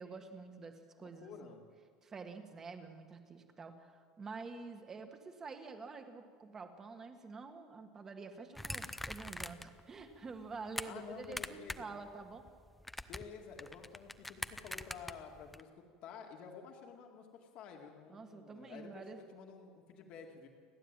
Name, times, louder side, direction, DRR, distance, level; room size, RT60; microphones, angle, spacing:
voice 1, 0.0-1.5 2.0-12.4 18.1-19.2, right 4 dB, 20° right, 6 dB, 1.7 m, -48 dB
voice 2, 1.0-1.6 10.8-11.9 13.1-15.7 16.0-20.5, left 6 dB, 45° left, 2 dB, 2.1 m, -51 dB
sound 1, 8.6-9.8 10.1-10.9 11.2-11.9 12.2-15.6, left 1 dB, 5° left, 0.6 m, -43 dB
29.5 x 12.5 x 9.0 m, 2.1 s
cardioid pair, 170°, 2 cm